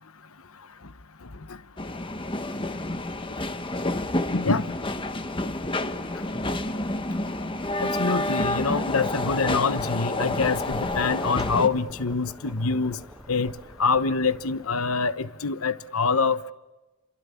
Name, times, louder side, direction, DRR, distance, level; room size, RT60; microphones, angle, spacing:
sound 1, 1.8-11.7, left 1 dB, 25° left, 1.3 m, -29 dB
voice 1, 4.3-4.8 7.8-13.0 13.3-13.5 13.8-16.5, left 4 dB, 80° left, 1.1 m, -25 dB
sound 2, 10.2-15.5, equal, ahead, 1.3 m, -45 dB
29.5 x 27.5 x 7.2 m
head